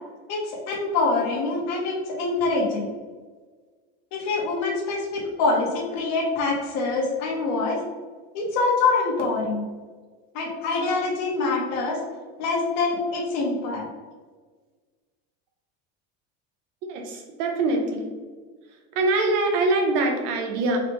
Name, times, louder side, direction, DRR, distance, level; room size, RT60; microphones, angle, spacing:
voice 1, 0.3-2.9 4.1-7.8 8.3-9.6 10.3-12.0 12.4-13.9, left 3 dB, 60° left, -2 dB, 0.9 m, -25 dB
voice 2, 16.9-18.1 19.0-20.8, right 2 dB, 60° right, 2 dB, 0.7 m, -23 dB
3.1 x 2.0 x 2.9 m, 1.4 s
cardioid pair, 155°, 31 cm